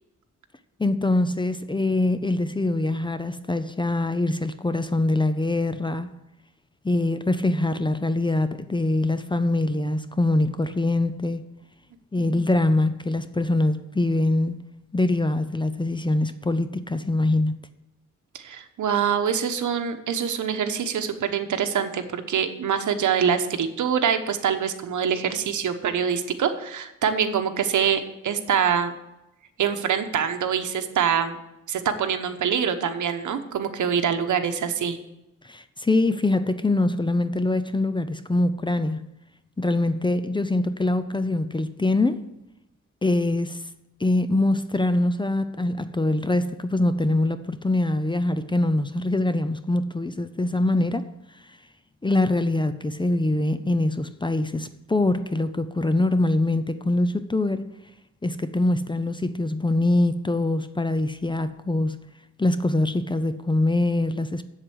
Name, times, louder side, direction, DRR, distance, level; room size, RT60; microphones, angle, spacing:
voice 1, 0.8-6.1 6.8-11.4 12.1-14.6 14.9-17.6 35.4-39.0 39.6-42.2 43.0-43.6 44.0-51.1 52.0-57.7 58.2-62.0 62.4-64.4, left 2 dB, 15° left, 0.6 m, -23 dB
voice 2, 18.3-28.9 29.6-31.4 31.7-35.0, right 7 dB, 80° right, 1.1 m, -25 dB
7.9 x 7.4 x 7.9 m
wide cardioid pair, 110°, 30 cm